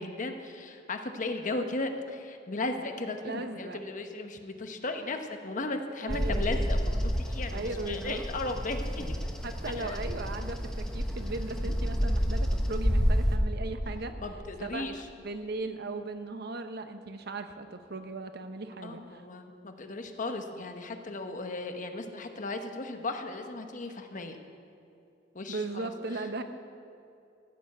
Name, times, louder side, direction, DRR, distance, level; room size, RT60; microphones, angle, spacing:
voice 1, 0.0-9.2 9.7-10.0 11.7-11.8 12.0-12.1 14.2-15.1 18.8-24.4 25.3-26.4, left 2 dB, 45° left, 6 dB, 1.0 m, -36 dB
voice 2, 3.2-3.8 6.1-6.5 7.5-8.2 9.4-14.1 14.6-14.9 15.2-19.0 25.5-26.4, right 3 dB, 60° right, 8 dB, 0.9 m, -37 dB
Bird vocalization bird call bird song, 6.1-13.4, equal, 5° left, 1.1 m, -29 dB
14.5 x 7.0 x 8.5 m, 2.6 s
head